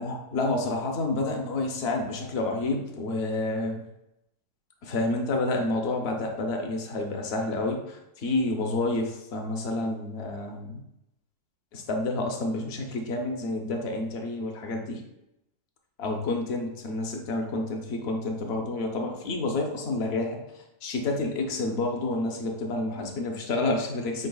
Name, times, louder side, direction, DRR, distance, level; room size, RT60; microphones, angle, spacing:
voice 1, 0.0-3.8 4.8-10.8 11.7-15.0 16.0-20.4 20.8-24.3, left 2 dB, 60° left, 3 dB, 0.7 m, -29 dB
4.8 x 3.9 x 2.2 m, 0.86 s
omnidirectional pair, 1.7 m